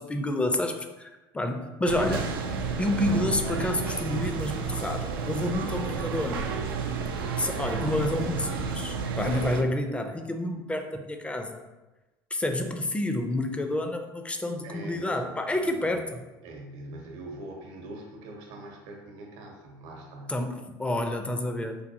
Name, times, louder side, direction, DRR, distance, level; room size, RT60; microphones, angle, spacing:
voice 1, 0.0-2.3 2.8-6.5 7.4-11.6 12.3-16.2 20.3-21.8, left 1 dB, 10° left, 6 dB, 0.4 m, -29 dB
sound 1, 1.8-9.6, right 5 dB, 90° right, 0.4 m, -31 dB
voice 2, 14.6-16.2 16.4-20.4 21.6-21.7, right 2 dB, 70° right, 1 dB, 0.8 m, -43 dB
4.5 x 2.3 x 2.7 m, 1.1 s
hypercardioid pair, 85°, 11 cm